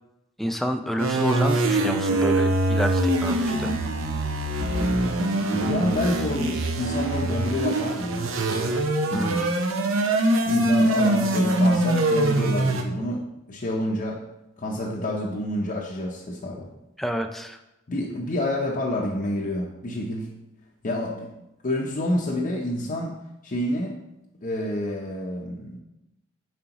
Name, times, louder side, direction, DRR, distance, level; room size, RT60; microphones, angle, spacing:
voice 1, 0.4-3.7 9.1-9.5 17.0-17.6, equal, ahead, 6 dB, 0.3 m, -29 dB
sound 1, 1.0-12.8, right 1 dB, 80° right, 0.7 m, -23 dB
voice 2, 5.4-8.4 9.1-9.5 10.5-14.2 14.6-16.7 17.9-20.3 20.8-21.3 21.6-24.0 24.4-25.8, left 1 dB, 40° left, -2 dB, 0.6 m, -28 dB
7.6 x 4.9 x 2.9 m, 0.93 s
head